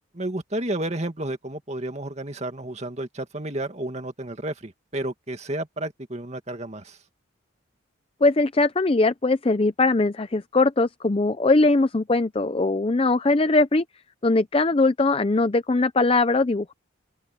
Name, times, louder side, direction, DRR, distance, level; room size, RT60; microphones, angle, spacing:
voice 1, 0.1-7.0, right 1 dB, 35° right, 2.1 m, -31 dB
voice 2, 8.2-13.8 14.2-16.7, left 2 dB, 30° left, 0.5 m, -21 dB
open air
head